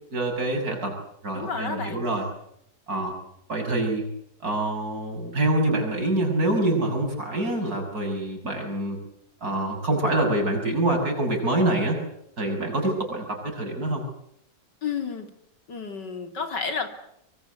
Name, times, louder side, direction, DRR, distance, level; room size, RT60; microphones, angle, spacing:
voice 1, 0.1-1.0 1.2-2.3 2.9-3.1 3.5-4.1 4.4-9.0 9.4-12.0 12.4-14.0, right 1 dB, 55° right, 2 dB, 7.2 m, -25 dB
voice 2, 1.3-2.0 14.8-15.3 15.7-16.9, left 5 dB, 75° left, 6 dB, 3.8 m, -31 dB
24.5 x 24.0 x 8.2 m, 0.74 s
omnidirectional pair, 1.9 m